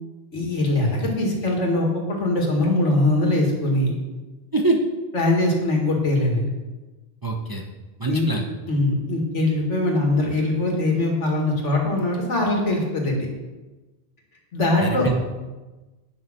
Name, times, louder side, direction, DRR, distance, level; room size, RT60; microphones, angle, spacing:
voice 1, 0.3-3.9 5.1-6.5 8.1-8.3 8.7-13.3 14.5-15.1, left 2 dB, 75° left, 0 dB, 2.3 m, -22 dB
voice 2, 7.2-7.6 8.0-8.5 14.8-15.1, right 3 dB, 20° right, 1 dB, 0.8 m, -23 dB
9.3 x 6.4 x 6.1 m, 1.2 s
omnidirectional pair, 1.2 m